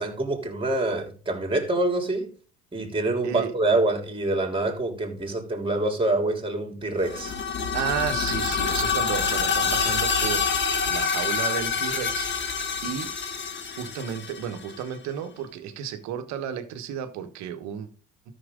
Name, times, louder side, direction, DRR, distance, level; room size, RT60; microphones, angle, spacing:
voice 1, 0.0-2.3 2.7-7.4, right 2 dB, 20° right, 3.2 m, -26 dB
sound 1, 7.0-14.8, left 5 dB, 40° left, 1.6 m, -27 dB
voice 2, 7.6-10.4 10.9-12.3 12.8-13.1 13.8-17.9, right 9 dB, 70° right, 1.4 m, -32 dB
13.0 x 6.2 x 3.8 m
hypercardioid pair, 70°, 29 cm